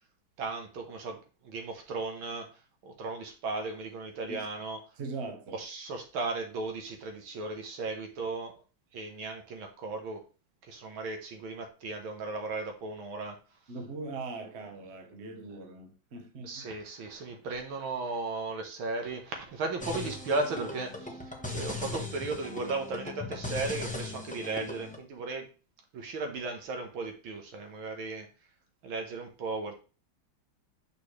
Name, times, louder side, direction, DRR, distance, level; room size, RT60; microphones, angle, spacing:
voice 1, 0.4-2.5 2.8-4.8 5.5-8.6 8.9-10.2 10.6-13.4 16.4-25.5 25.9-28.3 28.8-29.7, right 3 dB, 80° right, 1.9 m, -36 dB
voice 2, 5.0-5.6 13.7-16.7, right 3 dB, 40° right, 1.1 m, -40 dB
sound 1, 19.8-25.0, left 2 dB, 10° left, 0.3 m, -38 dB
6.4 x 5.4 x 3.2 m
omnidirectional pair, 2.2 m